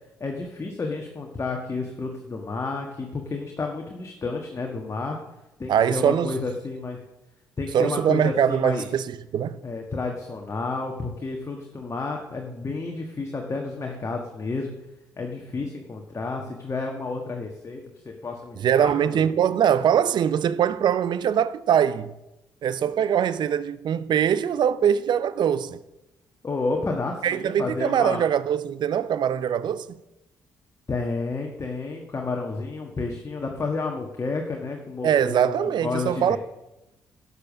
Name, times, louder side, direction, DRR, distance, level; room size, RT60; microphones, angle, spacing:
voice 1, 0.2-5.2 5.6-7.0 7.6-8.8 9.6-14.7 15.2-19.2 26.4-28.2 30.9-36.4, left 3 dB, 35° left, 1.5 m, -31 dB
voice 2, 5.7-6.4 7.7-9.6 18.6-22.1 22.6-25.8 27.2-30.0 35.0-36.4, right 9 dB, 55° right, 0.6 m, -22 dB
11.5 x 6.9 x 6.4 m
hypercardioid pair, 45°, 9 cm